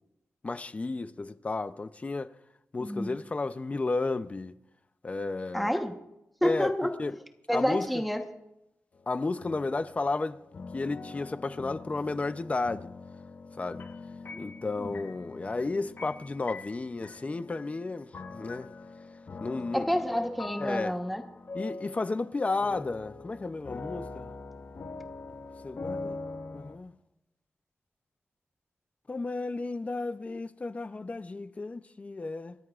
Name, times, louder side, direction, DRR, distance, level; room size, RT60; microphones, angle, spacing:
voice 1, 0.4-2.3 2.7-4.5 5.0-5.7 6.4-7.2 7.5-7.9 9.1-10.4 10.7-12.9 13.6-13.9 14.4-18.7 19.4-19.9 20.6-20.9 21.5-24.3 25.6-26.2 26.5-26.9 29.1-32.6, left 3 dB, 25° left, 0.6 m, -33 dB
voice 2, 2.8-3.2 5.5-6.0 6.4-6.9 7.5-8.2 14.3-14.4 14.8-14.9 19.7-21.2, equal, ahead, 1.1 m, -29 dB
sound 1, 9.0-26.8, left 3 dB, 45° left, 1.0 m, -43 dB
30.0 x 14.0 x 2.5 m
wide cardioid pair, 145°, 5 cm